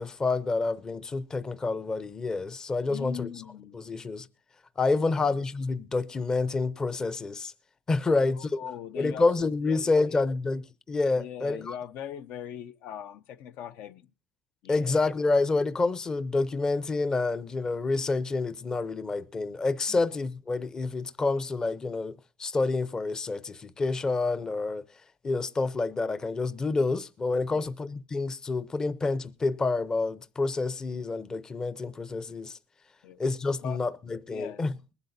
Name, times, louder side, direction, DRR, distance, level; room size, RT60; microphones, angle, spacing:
voice 1, 0.0-3.3 3.7-4.3 4.8-7.5 7.9-8.5 9.0-10.6 10.9-11.7 14.7-24.8 25.2-32.6 33.2-34.7, left 3 dB, 20° left, 0.6 m, -28 dB
voice 2, 2.9-3.8 4.9-5.4 8.1-9.3 9.6-10.3 11.2-14.1 14.6-14.9 19.9-20.0 27.5-27.7 33.0-33.2 33.6-33.8 34.3-34.6, left 9 dB, 65° left, 0.5 m, -41 dB
21.0 x 12.0 x 2.6 m
cardioid pair, 150°, 3 cm